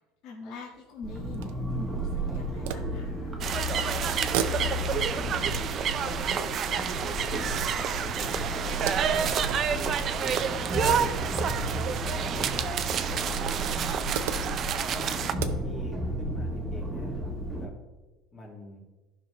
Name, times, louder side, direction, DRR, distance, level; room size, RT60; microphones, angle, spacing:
voice 1, 0.2-3.4, left 3 dB, 55° left, -3 dB, 1.8 m, -44 dB
sound 1, 0.7-3.7 4.0-7.9 8.3-10.9 11.8-11.9 12.3-12.4 13.5-16.1, right 10 dB, 90° right, 0.6 m, -39 dB
sound 2, 1.0-17.7, equal, 10° right, 1.2 m, -33 dB
sound 3, 3.4-15.3, right 8 dB, 35° right, 0.5 m, -29 dB
voice 2, 4.4-8.5 9.1-10.6 10.9-14.2 14.9-17.7 18.3-18.8, left 1 dB, 25° left, -1 dB, 2.2 m, -44 dB
15.0 x 5.5 x 3.2 m, 1.2 s
cardioid pair, 160°, 0 cm